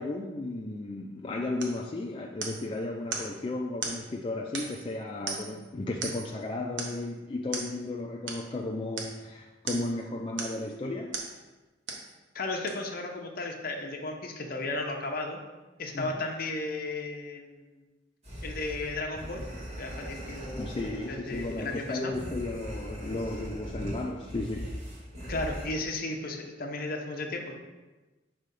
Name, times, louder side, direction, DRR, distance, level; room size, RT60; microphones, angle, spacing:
voice 1, 0.0-11.2 15.9-16.2 20.6-24.8, left 2 dB, 30° left, 0 dB, 0.3 m, -34 dB
sound 1, 1.6-1.8 2.4-2.7 3.1-3.3 3.8-4.0 4.5-4.9 5.3-5.6 6.0-6.3 6.8-7.0 7.5-7.7 8.3-8.4 9.0-9.2 9.7-9.9 10.4-10.7 11.1-11.3 11.9-12.1 12.7-12.8, right 4 dB, 85° right, 0.9 m, -36 dB
voice 2, 12.3-15.4 15.8-17.7 18.4-19.4 19.8-22.1 25.3-27.5, left 2 dB, 50° left, 2 dB, 0.7 m, -34 dB
sound 2, 18.2-25.7, equal, 35° right, 1.8 m, -40 dB
5.4 x 3.4 x 5.2 m, 1.2 s
head